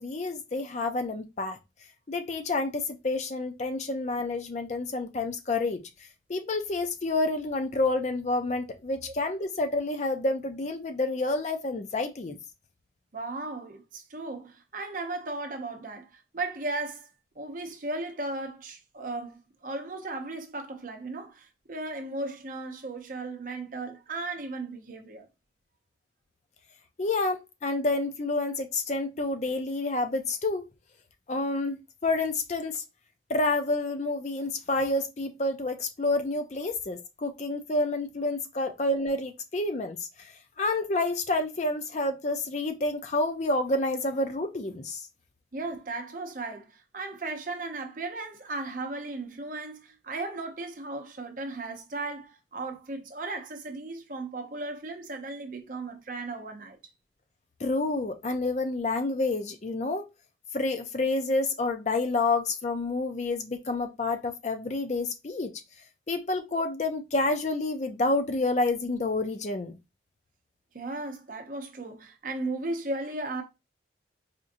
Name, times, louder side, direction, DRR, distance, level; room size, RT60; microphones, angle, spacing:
voice 1, 0.0-1.6 2.1-5.8 6.3-12.4 27.0-30.7 31.3-32.8 33.3-40.0 40.6-45.0 57.6-60.1 60.5-65.5 66.1-69.8, left 2 dB, 40° left, 0.4 m, -29 dB
voice 2, 13.1-17.1 17.4-25.3 45.5-56.8 70.7-73.4, right 2 dB, 45° right, 0.7 m, -36 dB
4.3 x 2.6 x 2.5 m
head